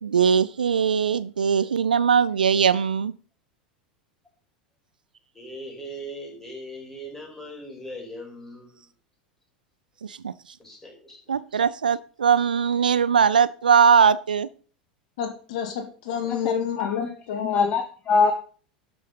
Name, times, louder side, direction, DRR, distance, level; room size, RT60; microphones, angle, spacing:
voice 1, 0.0-3.1 10.0-10.3 11.3-14.5, right 7 dB, 75° right, 17 dB, 0.5 m, -20 dB
voice 2, 5.3-8.7 10.6-11.2, equal, 10° left, -1 dB, 5.4 m, -39 dB
voice 3, 15.2-17.7, left 8 dB, 55° left, 6 dB, 2.0 m, -29 dB
voice 4, 16.3-17.1 17.4-18.3, left 5 dB, 30° left, 7 dB, 1.2 m, -24 dB
12.0 x 6.3 x 5.4 m, 0.41 s
figure-of-eight pair, 85°, 5 cm